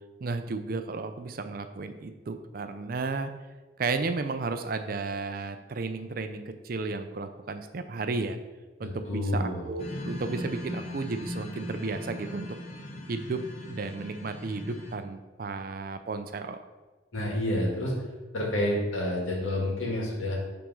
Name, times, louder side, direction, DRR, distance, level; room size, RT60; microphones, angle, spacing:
voice 1, 0.2-3.3 3.8-8.4 8.8-12.5 13.1-13.4 13.7-16.6, right 3 dB, 45° right, 9 dB, 0.4 m, -33 dB
voice 2, 8.8-9.7 17.1-17.9 18.3-20.4, left 1 dB, 85° left, -2 dB, 1.8 m, -29 dB
sound 1, 9.8-14.9, left 1 dB, 35° left, 0.8 m, -39 dB
5.8 x 3.6 x 5.4 m, 1.3 s
head